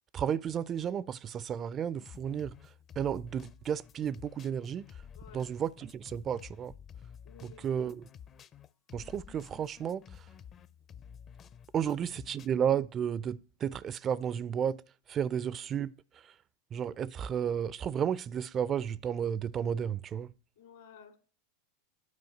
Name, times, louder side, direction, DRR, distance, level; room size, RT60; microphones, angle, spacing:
voice 1, 0.1-4.9 5.3-6.7 7.4-8.1 8.9-10.3 11.7-14.8 15.1-16.3 16.7-20.3, right 8 dB, 35° right, 0.4 m, -33 dB
sound 1, 2.0-12.5, left 8 dB, 35° left, 0.6 m, -52 dB
voice 2, 5.2-5.5 7.2-7.8 11.8-12.0 20.6-21.2, left 7 dB, 70° left, 2.4 m, -54 dB
9.6 x 4.7 x 7.6 m
hypercardioid pair, 90°, 0 cm